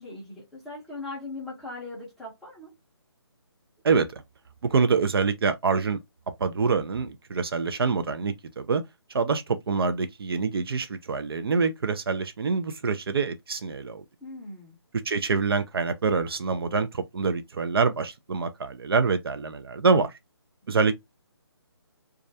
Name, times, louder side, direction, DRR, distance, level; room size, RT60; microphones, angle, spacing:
voice 1, 0.0-2.7 14.2-14.8, left 2 dB, ahead, 0.6 m, -39 dB
voice 2, 3.8-4.2 4.6-6.0 6.4-8.8 9.1-14.0 15.0-20.2 20.7-20.9, right 4 dB, 60° right, 0.4 m, -25 dB
2.3 x 2.1 x 2.6 m
hypercardioid pair, 165°, 14 cm